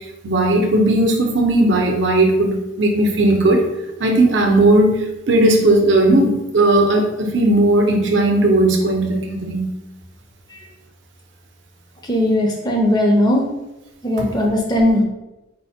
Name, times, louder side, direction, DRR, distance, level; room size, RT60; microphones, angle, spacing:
voice 1, 0.2-3.6 4.0-9.7, right 1 dB, 60° right, 2 dB, 0.6 m, -16 dB
voice 2, 12.1-13.5 14.0-15.0, left 1 dB, 20° left, 0 dB, 0.5 m, -17 dB
4.3 x 2.1 x 4.2 m, 0.98 s
head